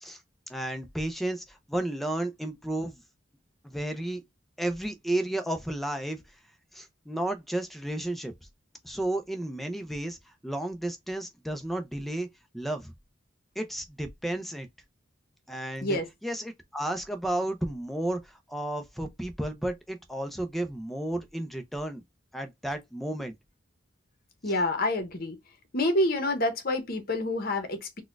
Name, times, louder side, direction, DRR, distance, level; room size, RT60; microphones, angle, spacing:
voice 1, 0.5-3.0 3.6-4.2 4.6-6.2 6.7-8.3 8.8-12.3 12.5-12.9 13.6-14.7 15.5-22.0 22.3-23.3 24.5-24.6, right 1 dB, ahead, 0.5 m, -32 dB
voice 2, 24.4-25.4 25.7-28.0, left 1 dB, 50° left, 0.9 m, -27 dB
4.1 x 2.2 x 2.3 m
head